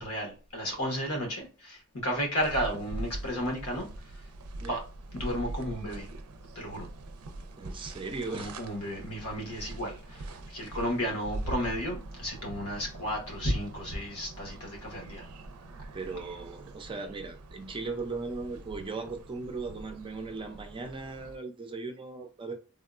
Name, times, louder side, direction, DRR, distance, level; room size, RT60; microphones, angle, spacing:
voice 1, 0.0-3.9 4.7-4.8 5.1-6.1 6.5-6.9 8.3-15.3, equal, 85° left, 1.1 m, -33 dB
sound 1, 2.4-21.4, right 2 dB, 80° right, 0.5 m, -43 dB
voice 2, 7.6-8.5 9.4-9.8 15.9-22.5, right 3 dB, 25° right, 0.4 m, -38 dB
3.5 x 2.2 x 2.4 m
head